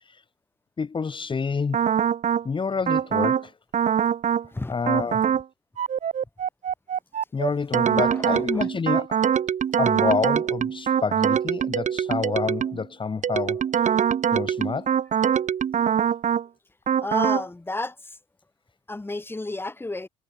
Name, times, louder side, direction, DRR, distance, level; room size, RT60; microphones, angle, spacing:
voice 1, 0.8-1.8 2.4-3.5 4.7-5.3 7.3-9.2 9.8-13.6 14.3-15.0, left 5 dB, 30° left, 2.4 m, -28 dB
sound 1, 1.7-2.5 2.9-3.4 3.7-4.5 4.9-5.4 5.8-12.8 13.2-16.5 16.9-17.4, right 8 dB, 45° right, 2.7 m, -23 dB
voice 2, 4.5-5.0 8.3-8.6 17.0-17.9 18.9-20.1, left 2 dB, 15° left, 2.8 m, -31 dB
hypercardioid pair, 60°, 18 cm